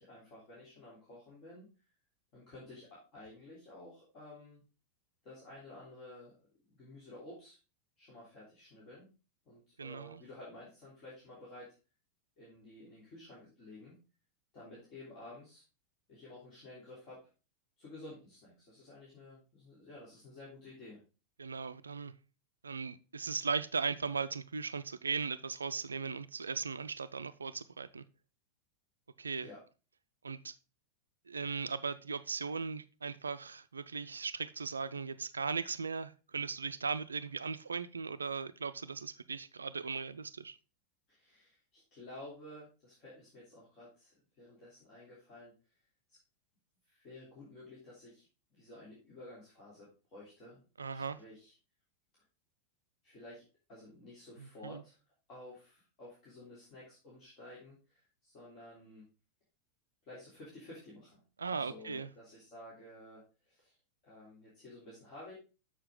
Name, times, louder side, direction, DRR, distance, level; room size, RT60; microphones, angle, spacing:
voice 1, 0.0-1.7 2.3-4.6 5.2-6.3 6.7-7.6 8.0-9.1 9.4-11.7 12.4-14.0 14.5-15.6 16.1-17.2 17.8-21.0 29.4-29.6 41.1-45.5 46.1-46.2 46.9-50.6 50.9-51.5 53.0-53.4 53.7-55.0 55.3-59.0 60.1-63.7 64.0-65.3, left 1 dB, 35° left, 3.2 m, -52 dB
voice 2, 9.8-10.2 21.4-22.1 22.6-28.0 29.2-29.5 30.2-30.6 31.3-40.6 50.8-51.2 54.4-54.8 61.4-62.1, right 5 dB, 75° right, 0.4 m, -38 dB
6.9 x 6.7 x 3.6 m
figure-of-eight pair, 90°, 0 cm